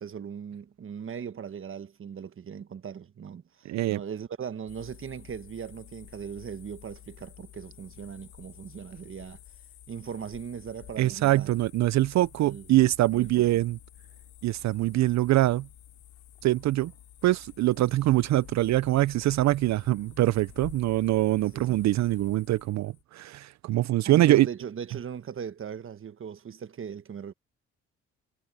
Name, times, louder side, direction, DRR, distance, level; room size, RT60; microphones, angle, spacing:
voice 1, 0.0-9.4 9.9-11.5 12.4-12.7 13.1-13.3 21.5-21.8 24.0-27.3, right 7 dB, 45° right, 1.2 m, -39 dB
voice 2, 3.7-4.0 11.0-13.8 14.4-15.7 16.4-16.9 17.2-24.5, right 16 dB, 65° right, 0.5 m, -24 dB
sound 1, 4.7-23.0, left 13 dB, 85° left, 2.7 m, -51 dB
cardioid pair, 90°, 30 cm